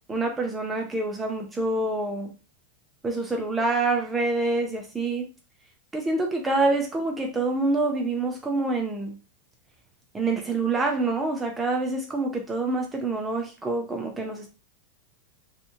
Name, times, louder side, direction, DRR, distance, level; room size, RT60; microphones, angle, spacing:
voice 1, 0.1-2.3 3.0-5.3 5.9-9.2 10.1-14.5, right 2 dB, 10° right, 2 dB, 0.4 m, -26 dB
2.8 x 2.0 x 2.6 m, 0.32 s
supercardioid pair, 180°, 0 cm